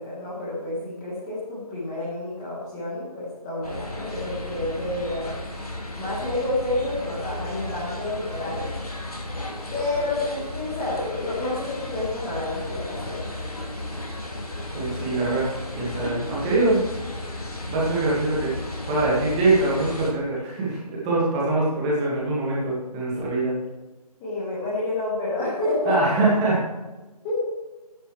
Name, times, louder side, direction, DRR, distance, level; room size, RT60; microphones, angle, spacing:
voice 1, 0.0-5.3 6.0-8.7 9.7-13.3 24.2-26.0 27.2-27.4, left 2 dB, 10° left, -9 dB, 1.5 m, -29 dB
sound 1, 3.6-20.1, left 1 dB, 70° left, 3.3 m, -34 dB
voice 2, 14.7-16.8 17.7-18.5 18.9-23.6 25.9-26.6, right 2 dB, 10° right, -6 dB, 1.8 m, -23 dB
13.5 x 10.5 x 3.2 m, 1.1 s
figure-of-eight pair, 155°, 20 cm